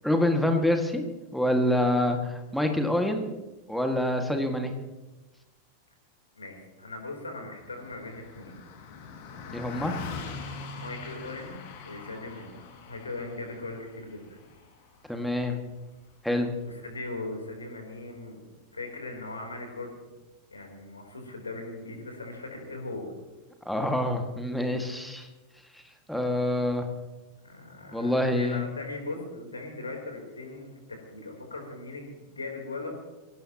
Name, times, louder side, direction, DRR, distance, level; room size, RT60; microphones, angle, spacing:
voice 1, 0.0-1.0 1.3-3.3 3.7-4.7 9.5-10.0 15.1-15.6 16.2-16.5 23.7-25.3 26.1-26.9 27.9-28.7, left 1 dB, ahead, 4 dB, 2.0 m, -26 dB
voice 2, 6.4-8.6 10.8-12.6 12.9-14.4 16.6-18.4 18.7-20.0 20.5-23.1 27.4-32.9, left 2 dB, 75° left, 2 dB, 3.8 m, -39 dB
Car passing by, 7.5-17.2, left 5 dB, 45° left, 2.3 m, -43 dB
23.5 x 17.0 x 3.0 m, 1.1 s
figure-of-eight pair, 90°, 0 cm